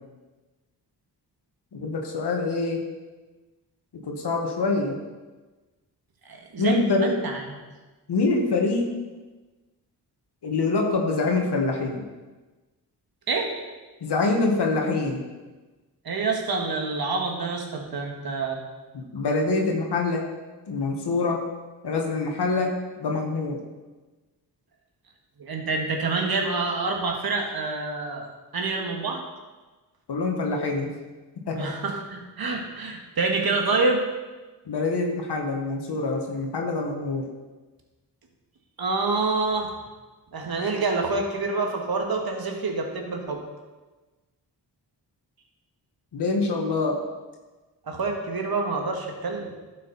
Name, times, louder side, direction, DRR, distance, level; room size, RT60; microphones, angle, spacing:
voice 1, 1.7-2.8 4.1-5.0 6.6-7.2 8.1-8.9 10.4-12.0 14.0-15.2 18.9-20.3 20.7-21.4 21.8-22.7 23.0-23.6 30.1-30.9 31.5-31.7 34.7-37.3 46.1-47.0, left 3 dB, 70° left, 1 dB, 1.6 m, -25 dB
voice 2, 6.2-7.6 13.3-13.5 16.0-18.6 25.4-28.3 28.5-29.2 31.6-34.0 38.8-39.7 40.3-43.4 47.9-49.5, right 3 dB, 60° right, 2 dB, 1.8 m, -27 dB
11.5 x 6.3 x 4.2 m, 1.2 s
cardioid pair, 60°, 42 cm